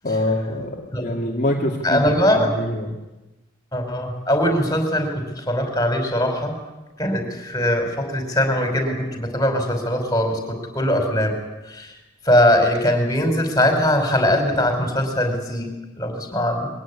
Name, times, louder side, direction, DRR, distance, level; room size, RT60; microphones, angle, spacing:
voice 1, 0.0-2.0 2.6-2.9, left 1 dB, 40° left, -3 dB, 2.5 m, -24 dB
voice 2, 1.8-2.5 3.7-6.5 7.0-11.4 11.7-11.9 12.2-15.7 16.0-16.7, left 1 dB, 15° left, 4 dB, 5.0 m, -21 dB
22.5 x 17.5 x 9.9 m, 1.1 s
head